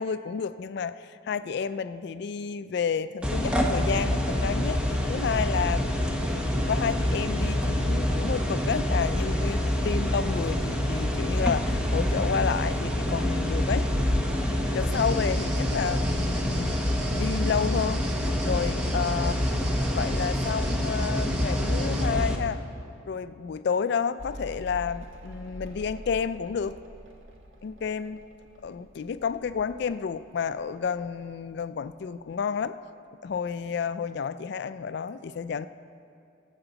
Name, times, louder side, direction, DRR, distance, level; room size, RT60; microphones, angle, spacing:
voice 1, 0.0-4.8 5.1-13.9 14.7-16.8 17.1-18.0 18.4-19.4 19.9-22.6 23.1-26.8 27.6-28.2 28.6-32.8 33.2-35.7, left 6 dB, 55° left, 13 dB, 0.3 m, -30 dB
sound 1, 3.2-22.4, left 1 dB, 5° right, 0.8 m, -26 dB
sound 2, 14.9-22.1, right 4 dB, 55° right, 1.2 m, -42 dB
Mechanical fan, 24.2-31.1 31.3-32.1, equal, 75° right, 1.2 m, -45 dB
19.5 x 7.9 x 4.0 m, 2.5 s
head